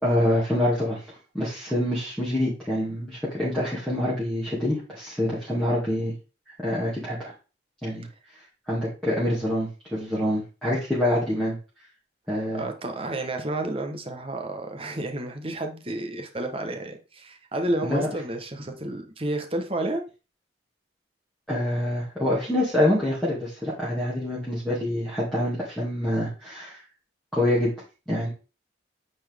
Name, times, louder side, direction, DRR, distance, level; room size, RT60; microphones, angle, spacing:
voice 1, 0.0-6.1 6.5-7.3 7.8-8.0 8.7-11.6 12.3-12.6 17.8-18.1 21.5-26.8 27.3-27.7 28.1-28.3, left 1 dB, 5° left, 2.4 m, -26 dB
voice 2, 12.5-20.0, right 1 dB, 30° right, 1.2 m, -31 dB
9.3 x 4.4 x 3.6 m
head